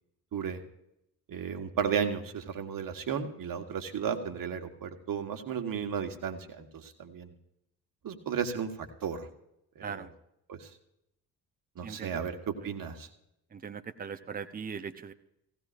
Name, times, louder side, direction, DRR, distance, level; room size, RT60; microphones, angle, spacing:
voice 1, 1.3-7.3 8.0-9.3 9.7-10.1 10.5-10.7 11.7-13.1, right 7 dB, 40° right, 6 dB, 1.5 m, -34 dB
voice 2, 11.8-12.2 13.5-15.1, right 6 dB, 20° right, 9 dB, 0.8 m, -40 dB
17.5 x 16.0 x 2.6 m, 0.79 s
figure-of-eight pair, 45°, 49 cm